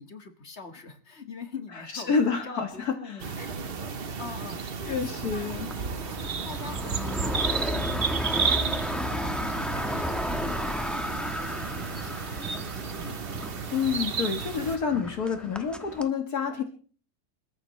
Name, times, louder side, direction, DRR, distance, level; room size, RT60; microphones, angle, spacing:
voice 1, 0.0-2.1 2.4-6.0 6.4-13.2, left 5 dB, 45° left, 5 dB, 2.0 m, -44 dB
voice 2, 1.9-3.2 4.9-5.7 13.7-16.6, left 6 dB, 75° left, 4 dB, 2.1 m, -28 dB
sound 1, 3.2-14.8, right 5 dB, 45° right, 1.0 m, -33 dB
sound 2, 4.6-16.1, equal, ahead, 1.2 m, -34 dB
28.5 x 14.5 x 3.2 m, 0.43 s
omnidirectional pair, 1.6 m